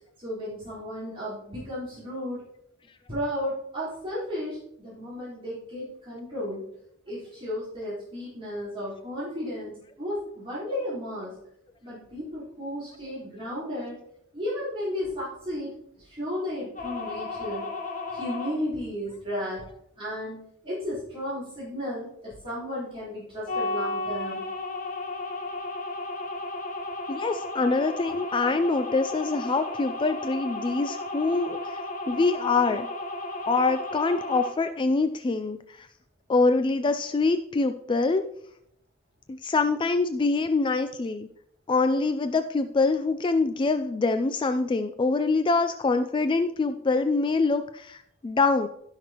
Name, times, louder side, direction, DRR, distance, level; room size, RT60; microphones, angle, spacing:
voice 1, 0.2-2.5 3.1-6.6 7.1-11.3 11.8-14.0 14.3-17.7 18.1-19.6 20.0-24.4, left 1 dB, 30° right, -11 dB, 4.0 m, -34 dB
sound 1, 16.8-18.6 23.5-34.6, left 2 dB, 40° left, 1.3 m, -34 dB
voice 2, 27.1-31.8 32.1-32.9 33.5-35.9 36.3-38.3 39.3-41.3 41.7-48.7, left 3 dB, 25° left, 9 dB, 0.3 m, -25 dB
15.5 x 5.8 x 2.9 m, 0.75 s
head